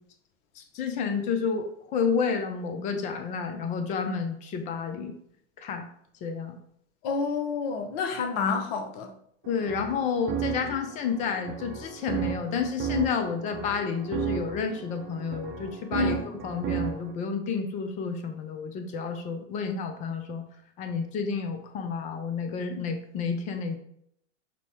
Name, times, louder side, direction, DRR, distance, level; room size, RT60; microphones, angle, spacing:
voice 1, 0.6-5.2 5.6-5.9 6.2-6.6 9.5-16.1 16.4-20.5 20.8-23.8, left 5 dB, 20° left, 6 dB, 0.3 m, -30 dB
voice 2, 7.0-9.1 15.9-16.2, left 5 dB, 45° left, 5 dB, 0.7 m, -29 dB
sound 1, 9.4-17.1, right 8 dB, 35° right, 0.5 m, -34 dB
5.2 x 2.0 x 2.8 m, 0.70 s
hypercardioid pair, 95°, 37 cm